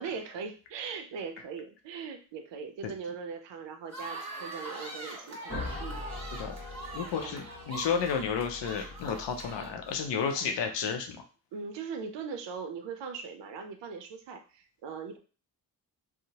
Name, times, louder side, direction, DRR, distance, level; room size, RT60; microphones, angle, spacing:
voice 1, 0.0-6.0 6.8-6.9 7.2-7.4 11.5-15.2, right 5 dB, 80° right, 6 dB, 0.6 m, -40 dB
sound 1, 3.9-10.8, right 2 dB, 40° right, 1.5 m, -43 dB
sound 2, 5.5-10.2, left 2 dB, 30° left, 0.8 m, -42 dB
voice 2, 6.9-11.2, left 6 dB, 85° left, 5 dB, 0.5 m, -32 dB
2.7 x 2.0 x 2.8 m, 0.36 s
cardioid pair, 55°, 42 cm